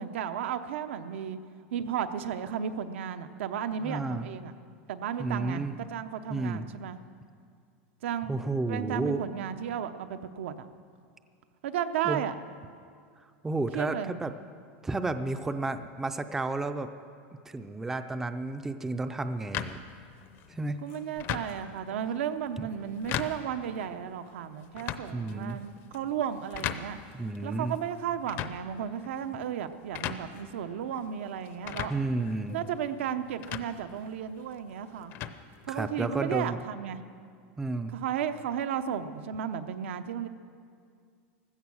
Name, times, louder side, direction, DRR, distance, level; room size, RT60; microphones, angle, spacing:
voice 1, 0.0-1.4 1.7-4.5 4.9-7.0 8.0-8.3 8.7-10.7 11.6-12.3 13.7-14.1 20.8-27.0 27.4-31.9 32.5-35.1 35.6-37.0 37.9-40.3, right 9 dB, 85° right, 9 dB, 0.8 m, -34 dB
voice 2, 3.8-4.3 5.2-5.8 6.3-6.7 8.3-9.2 12.0-12.2 13.4-14.3 14.8-16.9 17.5-19.8 20.5-20.8 25.1-25.6 27.1-27.8 31.9-32.6 35.7-36.6 37.6-38.0, right 2 dB, 5° right, 9 dB, 0.4 m, -32 dB
sound 1, 19.5-36.2, left 10 dB, 35° left, 0.6 m, -41 dB
16.0 x 13.5 x 6.3 m, 2.2 s
supercardioid pair, 165°, 6 cm